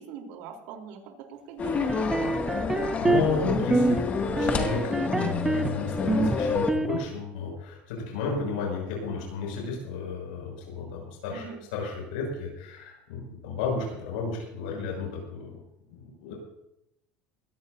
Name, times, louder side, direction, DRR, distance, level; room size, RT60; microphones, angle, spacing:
voice 1, 0.0-2.5 11.3-11.6, right 7 dB, 70° right, 1 dB, 3.8 m, -42 dB
sound 1, 1.6-6.7, left 5 dB, 30° left, 2.2 m, -28 dB
sound 2, 1.9-3.4 3.7-4.1 4.4-5.7 6.1-7.1, right 3 dB, 10° right, 0.7 m, -26 dB
voice 2, 2.7-4.0 4.4-15.6 15.9-16.3, left 4 dB, 90° left, -1 dB, 6.6 m, -33 dB
22.0 x 16.5 x 2.8 m, 0.83 s
supercardioid pair, 115°, 5 cm